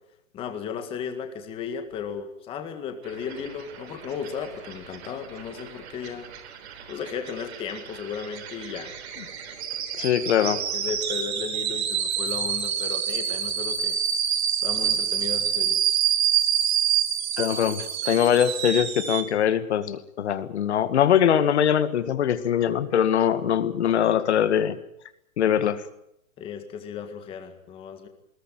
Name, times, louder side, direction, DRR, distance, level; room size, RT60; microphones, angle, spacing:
voice 1, 0.3-6.3 6.9-8.9 10.4-14.0 14.6-15.8 26.4-28.1, left 7 dB, 15° left, 7 dB, 1.9 m, -35 dB
sound 1, 3.1-19.2, right 9 dB, 50° right, 4.1 m, -28 dB
voice 2, 10.0-10.6 17.4-24.8 25.4-25.8, left 9 dB, 55° left, 13 dB, 2.0 m, -22 dB
20.5 x 19.0 x 9.1 m, 0.79 s
hypercardioid pair, 170°, 41 cm